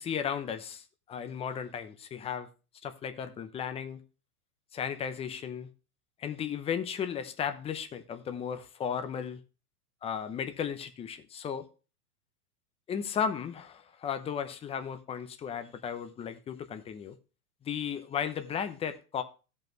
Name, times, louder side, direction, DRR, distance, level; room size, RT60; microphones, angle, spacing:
voice 1, 0.0-2.5 2.8-4.0 4.7-5.7 6.2-9.4 10.0-11.7 12.9-17.2 17.6-19.2, left 7 dB, 15° left, 0.7 m, -35 dB
15.5 x 5.4 x 3.0 m
hypercardioid pair, 135°, 45 cm